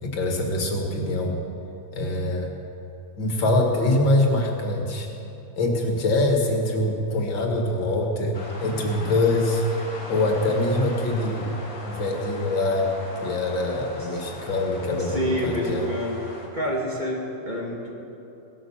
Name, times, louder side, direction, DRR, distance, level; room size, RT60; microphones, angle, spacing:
voice 1, 0.0-1.4 1.9-2.5 3.2-5.1 5.6-9.6 10.1-11.5 11.9-12.9 13.2-15.9, left 2 dB, 90° left, 1 dB, 2.7 m, -24 dB
sound 1, 8.3-16.5, left 1 dB, 50° left, 2.6 m, -39 dB
voice 2, 15.0-16.2 16.5-17.9, equal, 25° right, -2 dB, 2.4 m, -27 dB
17.5 x 11.0 x 7.3 m, 2.9 s
omnidirectional pair, 2.0 m